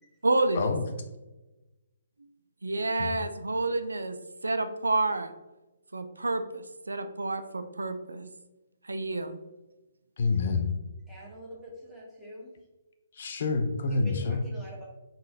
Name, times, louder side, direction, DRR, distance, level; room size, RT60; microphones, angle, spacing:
voice 1, 0.2-0.7 2.6-4.2 4.4-5.3 5.9-8.3 8.8-9.4, right 2 dB, 75° right, 9 dB, 0.3 m, -29 dB
voice 2, 10.2-10.7 13.1-14.4, left 4 dB, 50° left, 6 dB, 0.4 m, -27 dB
voice 3, 11.1-12.6 13.9-14.9, left 1 dB, 5° left, -6 dB, 1.0 m, -45 dB
3.7 x 3.7 x 2.5 m, 1.1 s
figure-of-eight pair, 130°, 0 cm